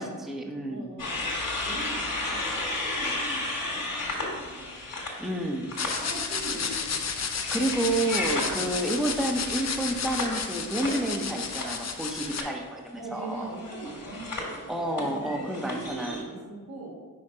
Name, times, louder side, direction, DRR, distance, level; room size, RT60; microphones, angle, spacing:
voice 1, 0.0-0.9 5.2-5.7 7.5-13.5 14.7-16.2, right 1 dB, ahead, 2 dB, 0.7 m, -30 dB
voice 2, 0.7-1.3 1.6-4.8 5.9-7.1 8.5-8.8 13.0-16.9, right 2 dB, 80° right, -4 dB, 1.7 m, -41 dB
sound 1, 1.0-5.9 6.3-12.0 12.3-12.6 13.5-16.2, left 2 dB, 65° left, 1.6 m, -34 dB
sound 2, 5.8-12.4, left 6 dB, 50° left, 0.6 m, -32 dB
5.4 x 4.5 x 3.9 m, 1.4 s
cardioid pair, 60°, 35 cm